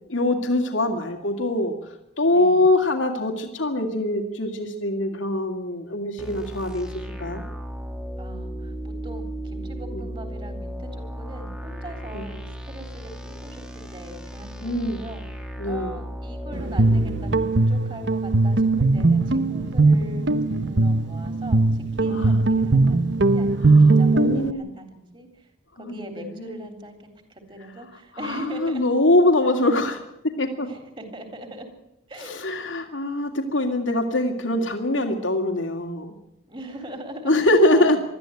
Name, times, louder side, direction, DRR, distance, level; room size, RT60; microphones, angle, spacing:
voice 1, 0.1-1.8 2.2-7.4 9.9-10.0 12.1-12.2 14.6-15.0 15.6-16.0 22.1-22.4 23.6-24.7 25.8-26.0 26.3-26.6 28.2-30.0 30.4-30.7 32.3-36.2 37.2-38.0, left 1 dB, 90° left, 4 dB, 2.4 m, -23 dB
sound 1, 6.2-17.5, equal, 5° right, 1.4 m, -35 dB
voice 2, 8.2-28.9 30.6-31.7 32.1-32.4 36.5-37.4 37.7-38.0, right 1 dB, 25° right, 6 dB, 3.6 m, -41 dB
Guitar, 16.5-24.5, right 3 dB, 65° right, 0.9 m, -19 dB
21.0 x 13.5 x 9.3 m, 0.87 s
head